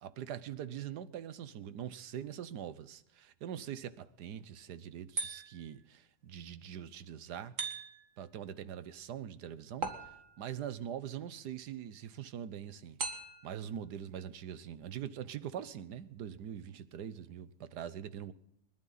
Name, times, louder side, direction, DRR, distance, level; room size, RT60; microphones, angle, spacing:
voice 1, 0.0-7.6 8.2-13.0 13.4-18.3, right 9 dB, 80° right, 1.5 m, -43 dB
sound 1, 5.2-5.8 7.6-8.2 9.8-10.6 13.0-13.6, right 4 dB, 50° right, 2.1 m, -39 dB
29.5 x 11.5 x 4.0 m
omnidirectional pair, 1.7 m